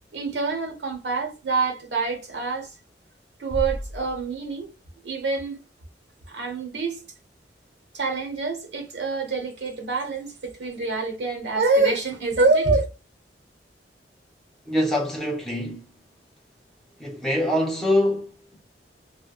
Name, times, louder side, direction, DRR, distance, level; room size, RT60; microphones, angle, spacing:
voice 1, 0.1-2.7 3.4-4.7 5.0-5.6 6.3-7.0 7.9-12.9, right 3 dB, 85° right, 1.1 m, -25 dB
Bass drum, 3.5-4.9, equal, 45° left, 0.6 m, -34 dB
voice 2, 14.7-15.9 17.0-18.6, left 1 dB, ahead, 0.7 m, -24 dB
3.3 x 2.2 x 2.3 m
head